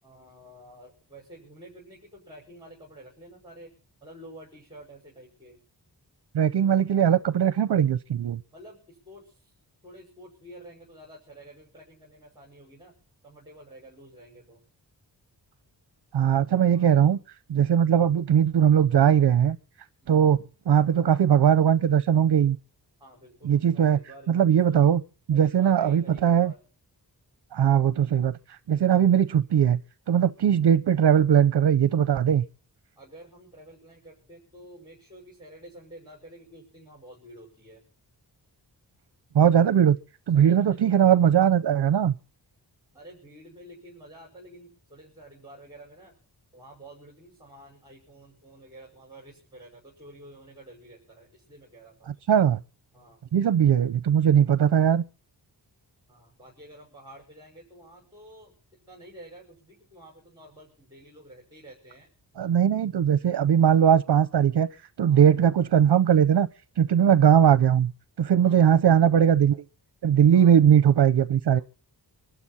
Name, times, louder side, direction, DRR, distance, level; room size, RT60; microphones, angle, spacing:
voice 1, 0.0-3.7 4.0-5.7 8.5-9.6 9.8-12.9 13.2-14.7 16.7-17.0 20.0-20.1 23.0-24.8 25.3-26.6 30.1-30.3 33.0-37.8 40.3-41.1 42.9-46.1 46.5-52.2 52.9-53.2 56.1-58.5 58.9-62.1 65.1-65.3 68.4-68.7 70.3-70.6, right 1 dB, 10° right, 5.7 m, -49 dB
voice 2, 6.3-8.4 16.1-17.2 17.5-19.6 20.1-20.4 20.7-22.6 23.4-24.0 24.3-25.0 25.3-26.5 27.5-29.8 30.1-32.4 39.3-40.0 40.3-42.1 52.3-52.6 53.3-55.0 62.4-66.5 66.8-67.9 68.2-69.6 70.0-71.6, right 9 dB, 70° right, 0.7 m, -20 dB
24.5 x 12.0 x 4.2 m
wide cardioid pair, 165°, 41 cm